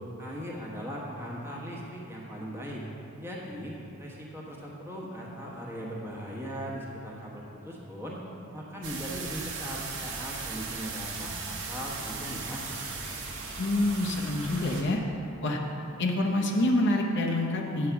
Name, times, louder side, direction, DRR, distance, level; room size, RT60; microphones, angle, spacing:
voice 1, 0.2-2.8 3.2-8.2 8.5-12.6, equal, 10° right, -4 dB, 1.2 m, -39 dB
sound 1, 8.8-14.8, right 4 dB, 60° right, 1.1 m, -37 dB
voice 2, 13.6-15.0 15.4-15.6 16.0-17.9, left 1 dB, 50° left, 1 dB, 0.7 m, -26 dB
8.6 x 4.8 x 6.9 m, 2.9 s
head